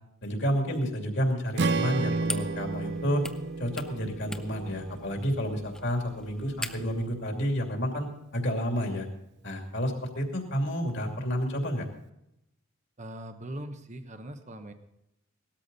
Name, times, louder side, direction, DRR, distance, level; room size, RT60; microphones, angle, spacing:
voice 1, 0.2-3.2 3.6-9.1 9.4-11.9, equal, 55° left, 2 dB, 2.7 m, -30 dB
sound 1, 1.6-7.1, left 1 dB, 5° left, 0.5 m, -42 dB
Strum, 1.6-5.8, right 3 dB, 55° right, 0.5 m, -32 dB
voice 2, 13.0-14.7, right 1 dB, 35° right, 8 dB, 1.0 m, -41 dB
18.0 x 13.0 x 4.1 m, 0.84 s
head